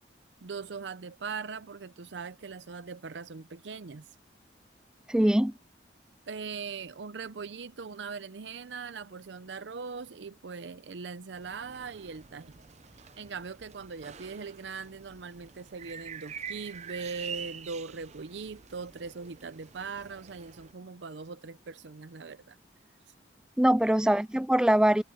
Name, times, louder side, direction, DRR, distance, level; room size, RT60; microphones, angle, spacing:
voice 1, 0.4-4.1 6.3-12.5 13.0-22.6 23.7-23.8, right 5 dB, 90° right, 0.6 m, -40 dB
voice 2, 5.1-5.5 23.6-25.0, right 1 dB, 5° right, 0.3 m, -22 dB
sound 1, 11.3-20.7, right 7 dB, 40° right, 0.7 m, -46 dB
head